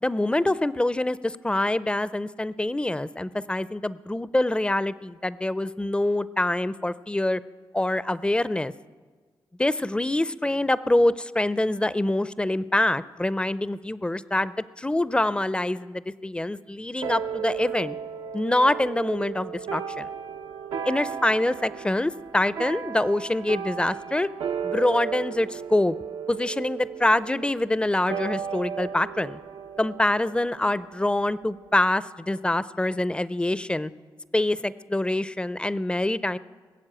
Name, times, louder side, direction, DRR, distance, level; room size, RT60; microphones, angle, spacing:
voice 1, 0.0-7.4 7.7-8.7 9.6-18.0 18.3-20.1 20.8-24.3 24.6-26.0 26.3-29.4 29.8-33.9 34.3-36.4, left 1 dB, 10° left, 16 dB, 0.5 m, -25 dB
sound 1, 17.0-31.7, right 7 dB, 85° right, 0.7 m, -35 dB
20.5 x 7.2 x 8.8 m, 1.5 s
cardioid pair, 55°, 9 cm